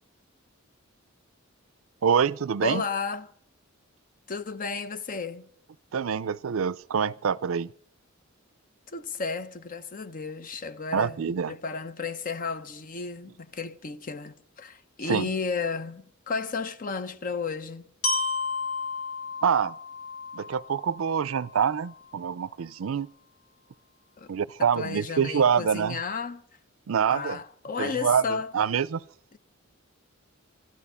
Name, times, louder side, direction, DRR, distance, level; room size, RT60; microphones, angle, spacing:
voice 1, 2.0-2.8 5.9-7.7 10.9-11.5 15.1-15.3 19.4-19.8 20.3-23.1 24.3-26.0 26.9-27.4 27.8-28.2 28.5-29.0, right 7 dB, 75° right, 0.5 m, -25 dB
voice 2, 2.6-3.3 4.3-5.5 8.9-17.9 24.2-24.3 24.6-26.4 27.1-28.5 29.3-29.4, left 4 dB, 40° left, 0.7 m, -33 dB
Glockenspiel, 18.0-22.0, left 3 dB, 70° left, 2.2 m, -33 dB
13.5 x 12.5 x 5.5 m
head